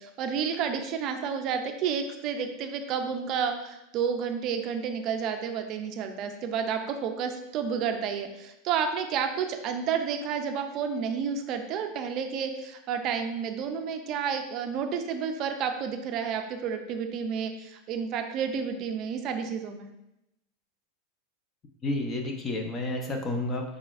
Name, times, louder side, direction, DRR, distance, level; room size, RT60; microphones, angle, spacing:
voice 1, 0.0-19.9, right 7 dB, 40° right, 6 dB, 0.4 m, -30 dB
voice 2, 21.8-23.8, left 2 dB, 25° left, 3 dB, 0.6 m, -30 dB
4.7 x 3.9 x 2.5 m, 0.87 s
supercardioid pair, 140°, 0 cm